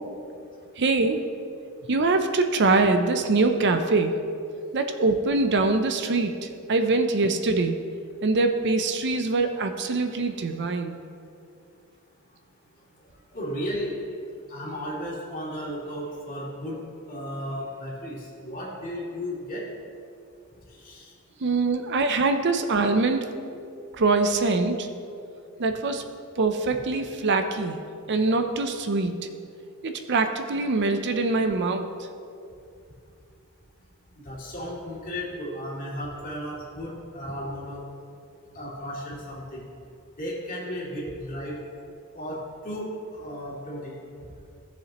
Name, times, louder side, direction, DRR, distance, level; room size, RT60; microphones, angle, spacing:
voice 1, 0.8-1.3 1.9-4.2 4.7-7.8 8.2-11.0 21.4-23.3 23.9-24.9 25.6-26.0 26.4-27.8 28.1-29.1 29.8-31.9, right 3 dB, 50° right, 7 dB, 0.6 m, -23 dB
voice 2, 13.3-14.0 14.2-16.8 17.1-19.6 20.8-21.1 34.2-37.8 38.5-39.6 40.2-41.6 42.1-43.9, equal, 40° left, -5 dB, 2.5 m, -34 dB
16.5 x 7.3 x 3.0 m, 2.5 s
head